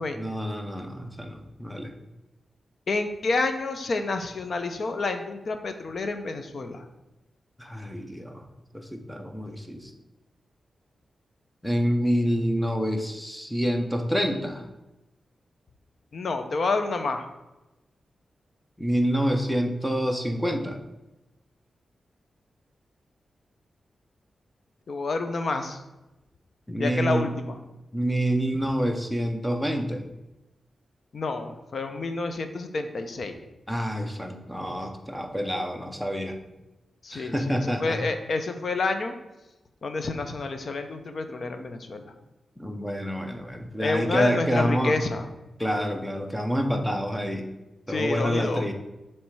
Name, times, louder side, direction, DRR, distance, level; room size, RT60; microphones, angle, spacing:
voice 1, 0.1-1.9 7.6-8.4 8.7-9.9 11.6-14.6 18.8-20.8 26.7-27.3 27.9-30.0 33.7-36.4 37.1-38.0 42.6-45.0 45.6-47.4 47.9-48.7, equal, 5° left, 4 dB, 0.7 m, -27 dB
voice 2, 2.9-6.9 16.1-17.3 24.9-25.8 26.8-27.6 31.1-33.4 37.0-39.1 39.8-42.1 43.8-45.3 47.9-48.7, left 3 dB, 50° left, 7 dB, 0.6 m, -29 dB
7.1 x 3.3 x 4.6 m, 1.0 s
wide cardioid pair, 130°, 0 cm